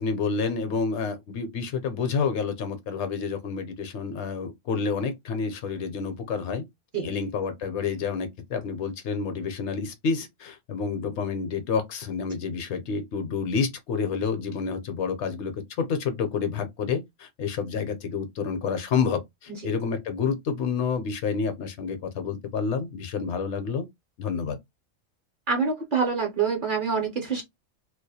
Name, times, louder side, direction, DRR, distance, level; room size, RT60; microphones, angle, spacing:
voice 1, 0.0-6.6 7.0-23.9 24.2-24.6, left 5 dB, 70° left, 0.8 m, -29 dB
voice 2, 25.5-27.4, right 5 dB, 50° right, 0.7 m, -26 dB
2.3 x 2.0 x 2.6 m
omnidirectional pair, 1.3 m